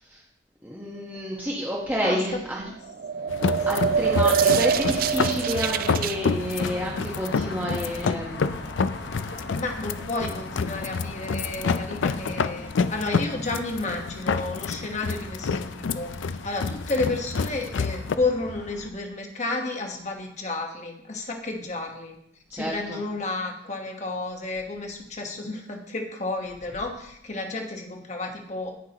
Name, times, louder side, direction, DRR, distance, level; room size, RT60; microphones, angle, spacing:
voice 1, 0.6-2.6 3.7-8.4 22.5-23.0, equal, 10° right, -4 dB, 1.2 m, -29 dB
voice 2, 2.0-2.4 2.7-2.8 4.3-4.4 4.6-4.7 9.5-22.1 22.5-28.7, left 2 dB, 35° left, 2 dB, 1.4 m, -31 dB
sound 1, 2.8-6.2, right 6 dB, 50° right, 0.3 m, -24 dB
sound 2, 3.3-18.2, left 5 dB, 80° left, 0.4 m, -28 dB
sound 3, 3.4-18.9, left 2 dB, 60° left, 0.9 m, -40 dB
17.0 x 6.0 x 3.0 m, 0.75 s
head